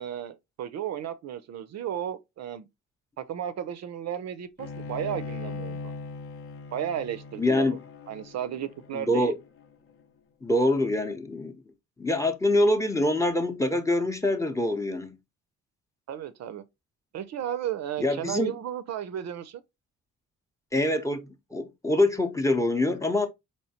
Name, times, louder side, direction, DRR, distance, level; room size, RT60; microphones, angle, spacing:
voice 1, 0.0-2.7 3.2-5.9 6.7-7.8 8.1-9.3 16.1-16.6 17.1-19.6, right 10 dB, 60° right, 0.5 m, -34 dB
Bowed string instrument, 4.6-9.9, left 3 dB, 45° left, 0.6 m, -40 dB
voice 2, 7.4-7.8 8.9-9.3 10.4-11.6 12.0-15.2 18.0-18.6 20.7-23.3, left 1 dB, 10° left, 0.7 m, -25 dB
4.3 x 3.2 x 2.8 m
cardioid pair, 90°, 30 cm